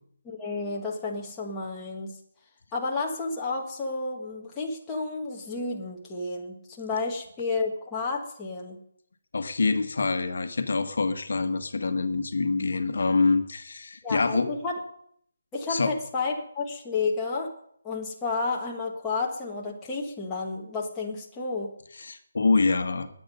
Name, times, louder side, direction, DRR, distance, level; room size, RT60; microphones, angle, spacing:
voice 1, 0.2-2.1 2.7-8.8 14.0-14.8 15.5-17.5 17.8-21.7, left 3 dB, 5° left, -3 dB, 1.3 m, -31 dB
voice 2, 9.3-14.5 15.7-15.9 22.0-23.1, left 3 dB, 55° left, 8 dB, 1.3 m, -25 dB
20.0 x 8.1 x 5.4 m, 0.66 s
hypercardioid pair, 175°, 0 cm